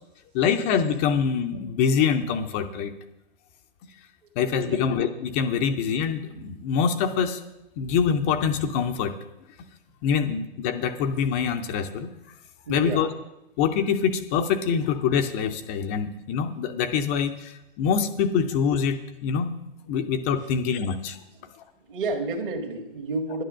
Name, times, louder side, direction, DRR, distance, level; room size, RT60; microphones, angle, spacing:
voice 1, 0.3-2.9 4.4-7.4 7.8-9.1 10.0-12.1 12.7-13.1 13.6-19.5 19.9-21.2, left 7 dB, 15° left, 7 dB, 0.3 m, -25 dB
voice 2, 12.7-13.1 21.3-21.5 21.9-23.4, right 3 dB, 55° right, 2 dB, 1.8 m, -30 dB
11.0 x 9.3 x 6.2 m, 0.91 s
figure-of-eight pair, 120°, 31 cm